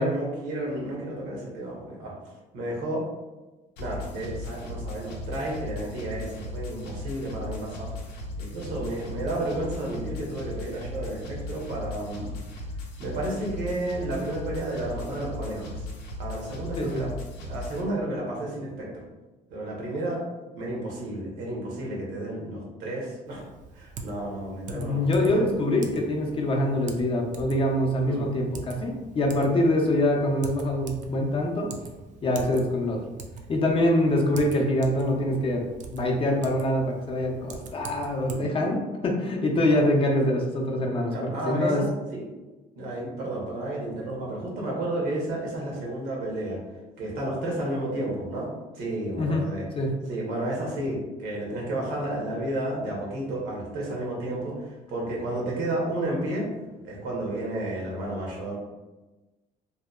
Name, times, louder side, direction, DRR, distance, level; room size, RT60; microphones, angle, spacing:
voice 1, 0.0-2.1 2.5-3.1 3.8-8.0 8.4-12.3 13.0-15.9 16.2-17.1 17.4-19.0 19.5-20.2 20.6-23.4 23.7-25.4 28.1-28.2 39.7-39.9 41.1-42.2 42.8-46.6 47.0-49.6 50.1-56.5 56.8-58.6, right 1 dB, 85° right, -2 dB, 0.9 m, -32 dB
sound 1, 3.8-17.8, left 1 dB, 85° left, 0.5 m, -37 dB
voice 2, 16.8-17.1 24.7-31.7 32.2-33.0 33.5-35.6 35.9-41.9 49.2-49.5 49.8-49.9, left 1 dB, 35° left, 0 dB, 0.5 m, -24 dB
Typing, 23.3-38.4, right 4 dB, 45° right, 0.4 m, -44 dB
2.7 x 2.1 x 2.3 m, 1.1 s
cardioid pair, 110°, 17 cm